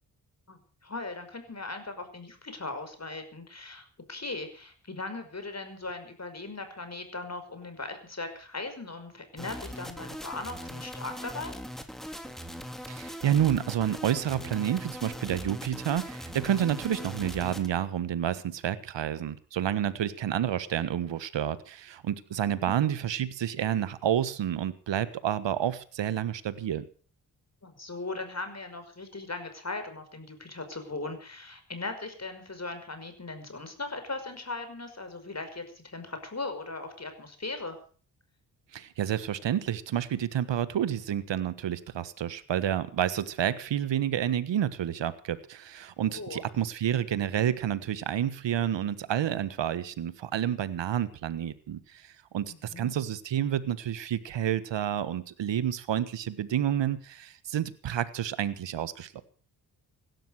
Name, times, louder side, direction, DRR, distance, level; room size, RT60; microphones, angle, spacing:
voice 1, 0.5-11.6 22.6-22.7 27.6-37.8 46.1-46.4 52.5-53.0, left 3 dB, 35° left, 8 dB, 5.6 m, -39 dB
sound 1, 9.4-17.7, equal, ahead, 3.5 m, -40 dB
voice 2, 12.9-26.9 38.7-59.2, right 10 dB, 70° right, 15 dB, 1.5 m, -29 dB
16.5 x 12.5 x 6.4 m, 0.42 s
supercardioid pair, 45°, 45 cm